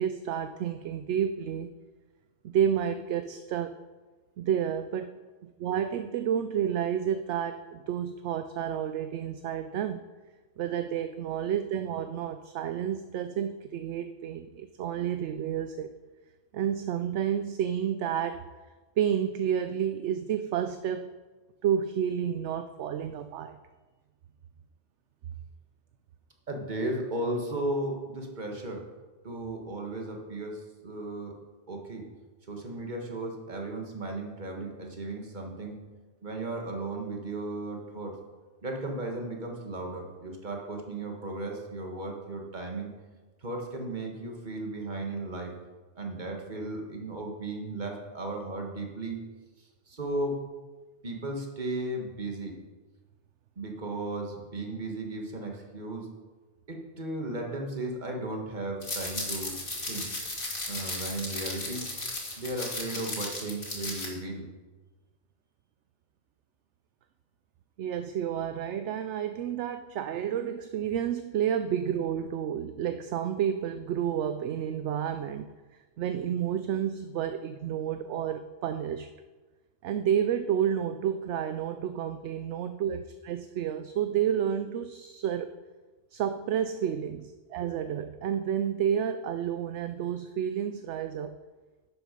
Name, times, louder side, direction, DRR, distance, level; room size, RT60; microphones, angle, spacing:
voice 1, 0.0-1.7 2.4-3.8 4.4-10.0 10.6-15.9 16.5-18.4 19.0-21.1 21.6-23.6 67.8-75.5 76.0-79.1 79.8-85.5 86.1-91.4, right 9 dB, 70° right, 10 dB, 0.8 m, -30 dB
voice 2, 26.5-28.8 29.2-31.4 31.7-32.1 32.5-35.8 36.2-38.2 38.6-42.9 43.4-45.6 46.0-49.3 49.6-50.4 51.0-52.6 53.6-56.1 56.7-60.1 60.6-61.9 62.4-64.5, right 2 dB, 40° right, 2 dB, 1.7 m, -35 dB
sound 1, 58.8-64.1, left 2 dB, 45° left, 2.4 m, -35 dB
11.0 x 8.0 x 5.2 m, 1.3 s
omnidirectional pair, 1.3 m